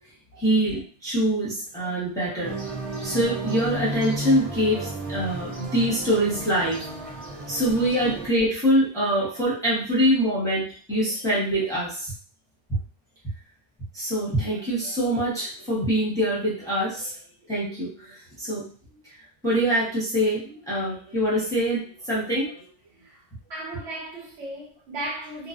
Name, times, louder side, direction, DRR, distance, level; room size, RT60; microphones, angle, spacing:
voice 1, 0.4-2.6 3.0-6.8 7.5-12.1 13.9-17.1 17.5-18.6 19.4-21.8 22.1-22.6, equal, 5° left, 0.8 m, -24 dB
sound 1, 2.4-8.3, right 2 dB, 50° right, 0.4 m, -33 dB
voice 2, 23.5-25.5, right 1 dB, 75° right, 1.1 m, -36 dB
2.5 x 2.0 x 2.4 m
omnidirectional pair, 1.1 m